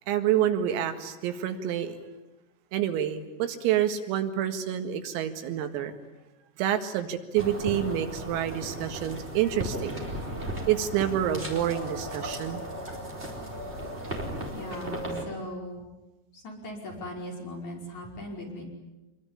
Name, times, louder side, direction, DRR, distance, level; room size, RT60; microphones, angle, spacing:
voice 1, 0.1-2.0 2.7-5.9 6.6-10.0 10.7-12.6, right 10 dB, 85° right, 7 dB, 4.5 m, -28 dB
sound 1, 7.3-15.2, right 1 dB, 15° right, 4.0 m, -36 dB
voice 2, 14.5-15.8 16.3-18.6, left 1 dB, 35° left, -1 dB, 6.3 m, -39 dB
26.5 x 22.5 x 9.9 m, 1.1 s
omnidirectional pair, 5.9 m